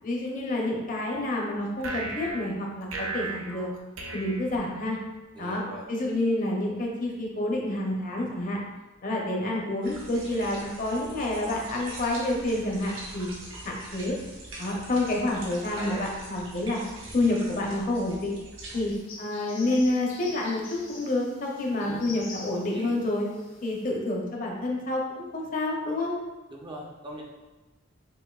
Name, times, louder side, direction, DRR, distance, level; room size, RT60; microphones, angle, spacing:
voice 1, 0.0-3.7 4.1-5.0 5.4-8.6 9.0-13.3 13.6-14.1 14.6-16.8 17.1-18.3 18.7-23.2 23.6-26.1, left 2 dB, 40° left, -1 dB, 0.7 m, -28 dB
sound 1, 1.8-5.2, right 3 dB, 85° right, 0.6 m, -37 dB
voice 2, 5.3-5.9 15.7-16.1 21.7-22.2 22.7-23.0 26.5-27.2, right 1 dB, 20° right, -2 dB, 0.5 m, -40 dB
sound 2, 9.8-19.0, right 2 dB, 70° right, 1.0 m, -43 dB
sound 3, 18.9-23.8, left 3 dB, 70° left, 1.0 m, -46 dB
6.0 x 2.6 x 2.3 m, 1.1 s
head